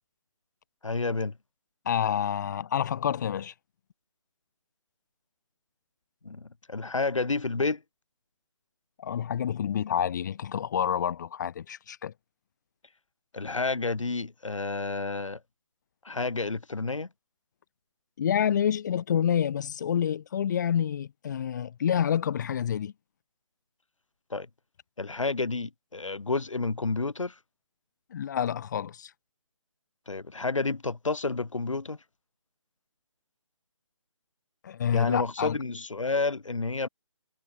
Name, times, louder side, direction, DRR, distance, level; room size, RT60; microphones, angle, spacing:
voice 1, 0.8-1.3 6.2-7.8 13.3-15.4 16.0-17.1 24.3-24.5 25.0-27.3 30.1-32.0 34.9-36.9, left 3 dB, 80° left, 4.4 m, -30 dB
voice 2, 1.9-3.5 9.0-12.1 18.2-22.9 28.1-29.1 34.6-35.6, left 9 dB, 35° left, 3.8 m, -28 dB
figure-of-eight pair, 160°, 16 cm